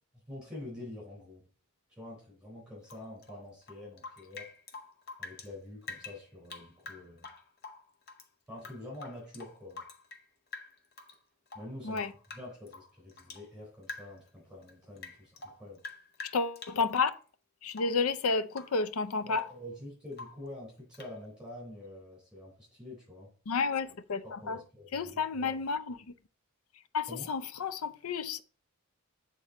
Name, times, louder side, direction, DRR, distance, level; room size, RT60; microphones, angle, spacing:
voice 1, 0.3-1.4 1.9-4.5 5.2-7.3 8.5-9.8 11.5-12.0 12.3-15.8 19.2-23.3 24.2-25.5 27.1-27.3, left 1 dB, 5° right, 4.0 m, -46 dB
Rain / Drip, 2.8-5.5 5.8-8.3 8.6-10.3 10.5-11.2 11.5-13.5 13.8-14.3 14.6-17.1 17.7-18.1 18.5-18.8 19.1-19.7 20.1-20.5 20.9-21.2, left 3 dB, 45° left, 0.8 m, -47 dB
voice 2, 16.2-17.2 17.6-19.5 23.5-24.6 24.9-26.1 26.9-28.4, left 4 dB, 85° left, 0.5 m, -31 dB
7.9 x 3.9 x 4.1 m
head